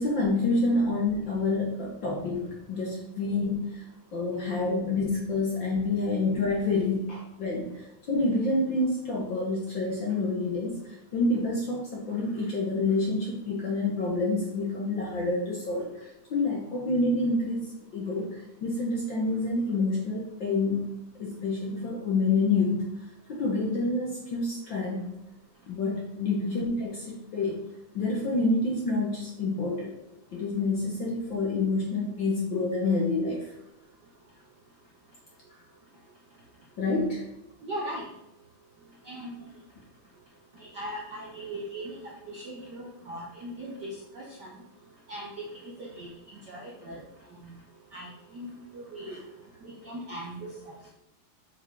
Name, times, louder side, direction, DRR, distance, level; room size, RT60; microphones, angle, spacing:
voice 1, 0.0-3.8 4.1-10.8 11.1-15.9 16.3-17.6 17.9-20.9 21.2-22.9 23.3-25.1 25.7-27.6 27.9-29.9 30.3-33.5 36.8-37.2, left 2 dB, 55° left, -3 dB, 1.4 m, -28 dB
voice 2, 37.6-38.0 39.1-39.4 40.7-41.9 42.3-44.5 45.1-45.5 45.8-46.1 46.5-47.0 47.4-47.5 47.9-49.2 49.6-50.5, right 1 dB, 60° right, -4 dB, 1.1 m, -39 dB
6.8 x 4.9 x 4.7 m, 0.83 s
omnidirectional pair, 3.4 m